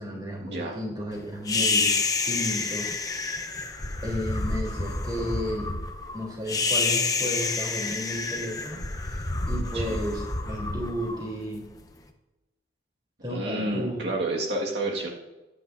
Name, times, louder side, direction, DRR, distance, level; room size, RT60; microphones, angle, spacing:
voice 1, 0.0-3.2 4.0-5.7 6.1-11.6 13.2-14.0, equal, 25° right, -2 dB, 3.5 m, -33 dB
sound 1, 1.5-11.8, left 3 dB, 20° left, 0.9 m, -28 dB
voice 2, 13.3-15.1, right 2 dB, 75° right, -2 dB, 1.9 m, -30 dB
21.5 x 9.7 x 2.7 m, 1.1 s
head